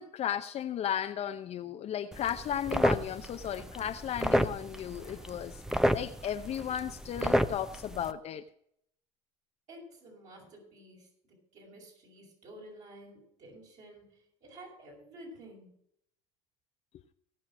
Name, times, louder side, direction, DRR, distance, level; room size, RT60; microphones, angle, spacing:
voice 1, 0.0-5.6 5.9-8.4, left 10 dB, 45° left, 7 dB, 0.7 m, -35 dB
sound 1, 2.1-8.1, equal, 5° right, 0.7 m, -31 dB
voice 2, 9.7-11.1 11.5-15.7, right 1 dB, 50° right, -2 dB, 6.1 m, -51 dB
17.5 x 5.9 x 6.3 m, 0.71 s
supercardioid pair, 95°, 15 cm